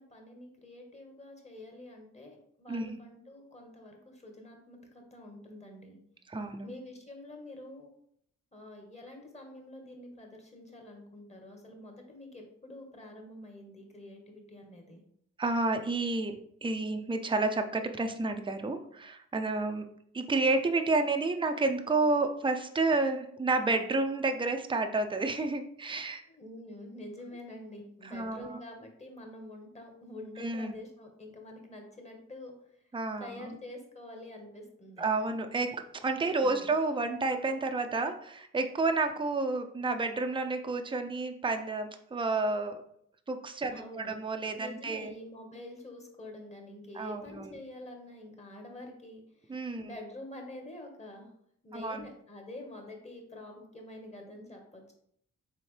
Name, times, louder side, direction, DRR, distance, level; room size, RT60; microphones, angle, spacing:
voice 1, 0.0-6.0 6.6-7.9 8.5-15.0 26.3-32.5 33.2-35.1 36.4-36.7 43.7-44.1 44.5-49.2 49.5-51.3 51.6-54.9, left 1 dB, 20° left, 2 dB, 1.5 m, -47 dB
voice 2, 2.7-3.0 6.3-6.7 15.4-16.3 16.6-19.9 20.1-26.2 28.0-28.6 30.4-30.8 32.9-33.6 35.0-42.8 43.3-45.1 46.9-47.6 49.5-49.9 51.7-52.1, right 3 dB, 15° right, 6 dB, 0.6 m, -30 dB
4.3 x 3.4 x 3.3 m, 0.68 s
supercardioid pair, 55°, 29 cm